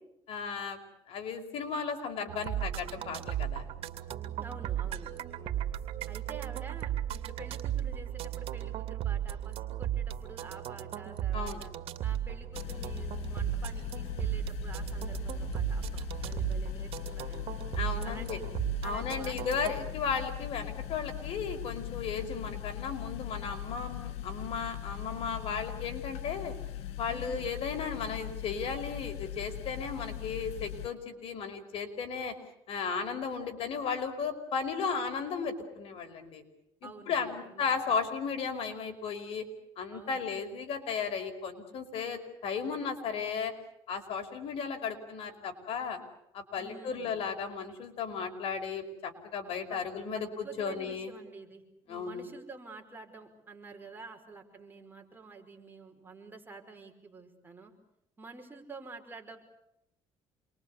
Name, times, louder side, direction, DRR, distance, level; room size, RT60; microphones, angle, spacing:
voice 1, 0.3-0.8 1.1-3.6 5.4-5.7 11.3-11.6 17.7-18.4 18.8-26.5 27.0-32.3 32.7-36.4 36.8-39.5 39.8-43.5 43.9-46.0 46.3-51.1 51.9-52.2, left 5 dB, 65° left, 5 dB, 5.2 m, -35 dB
sound 1, 2.3-19.7, right 11 dB, 65° right, 2.9 m, -35 dB
voice 2, 4.4-5.1 6.1-11.7 12.0-17.6 18.0-18.5 18.8-19.8 27.0-27.5 36.8-37.7 39.9-40.2 46.6-47.2 49.4-49.8 50.1-57.7 58.2-59.4, right 3 dB, 20° right, 3 dB, 5.6 m, -49 dB
sound 2, 12.5-30.9, left 12 dB, 80° left, 1.7 m, -40 dB
28.5 x 23.0 x 8.5 m, 0.82 s
cardioid pair, 110°, 11 cm